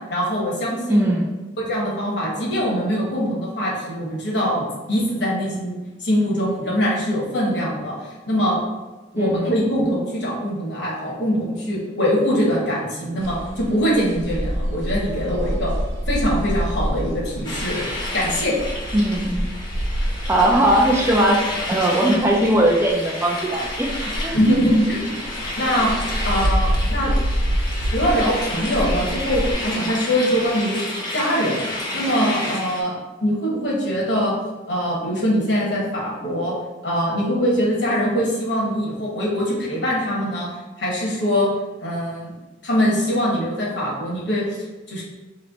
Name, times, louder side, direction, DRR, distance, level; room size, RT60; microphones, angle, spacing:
voice 1, 0.1-1.1 1.6-8.6 9.1-15.7 16.1-17.8 18.1-18.6 24.3-25.9 26.2-27.1 27.9-30.7 31.1-32.9 33.2-34.3 34.7-36.5 36.8-40.5 40.8-41.5 41.8-42.3 42.6-45.0, equal, 60° left, -3 dB, 1.1 m, -22 dB
voice 2, 0.9-1.3 9.2-9.5 18.9-19.5 20.3-23.9 24.2-24.4, right 1 dB, 10° right, -1 dB, 0.3 m, -19 dB
sound 1, 13.2-29.5, equal, 75° right, 0.6 m, -27 dB
sound 2, 17.4-32.8, left 1 dB, 20° left, 0.7 m, -31 dB
3.2 x 2.9 x 4.0 m, 1.2 s
head